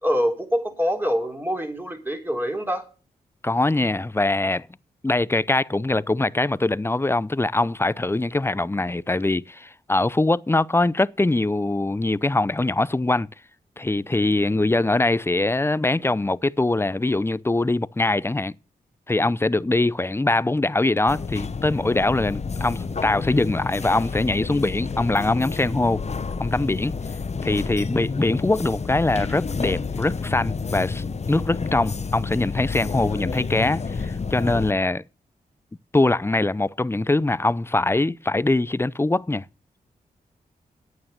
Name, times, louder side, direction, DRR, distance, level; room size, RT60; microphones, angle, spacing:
voice 1, 0.0-2.8, equal, 10° right, 3.6 m, -25 dB
voice 2, 3.4-4.7 5.0-13.3 13.8-18.5 19.1-26.0 26.4-26.9 27.4-35.0 35.9-39.5, left 2 dB, 15° left, 0.5 m, -22 dB
sound 1, 21.1-34.7, left 4 dB, 40° left, 0.9 m, -30 dB
9.4 x 8.7 x 6.6 m
supercardioid pair, 45°, 17 cm